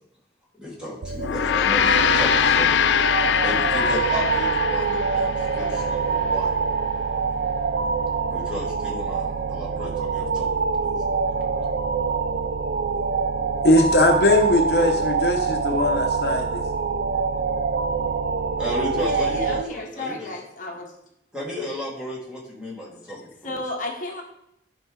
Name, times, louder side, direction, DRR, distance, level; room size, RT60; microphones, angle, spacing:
voice 1, 0.6-2.7 3.4-6.6 8.3-10.9 18.6-20.3 21.3-23.6, left 1 dB, 5° right, -5 dB, 2.3 m, -34 dB
sound 1, 1.0-19.6, right 5 dB, 60° right, 0.4 m, -25 dB
Gong, 1.2-5.8, left 9 dB, 80° left, 0.4 m, -22 dB
voice 2, 13.6-16.6, left 1 dB, 60° left, 3 dB, 1.0 m, -20 dB
voice 3, 19.0-20.9 23.4-24.2, left 2 dB, 45° left, 0 dB, 1.3 m, -33 dB
12.0 x 5.4 x 3.9 m, 0.80 s
head